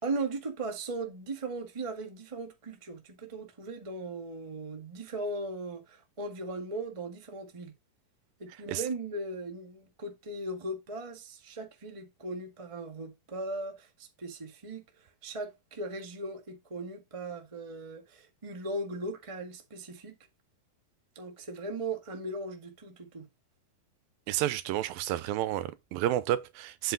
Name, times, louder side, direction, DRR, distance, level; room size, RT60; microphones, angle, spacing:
voice 1, 0.0-7.7 8.4-20.2 21.1-23.3, right 2 dB, 50° right, 0.3 m, -38 dB
voice 2, 24.3-26.9, right 13 dB, 90° right, 2.5 m, -30 dB
8.1 x 5.4 x 3.9 m
omnidirectional pair, 4.1 m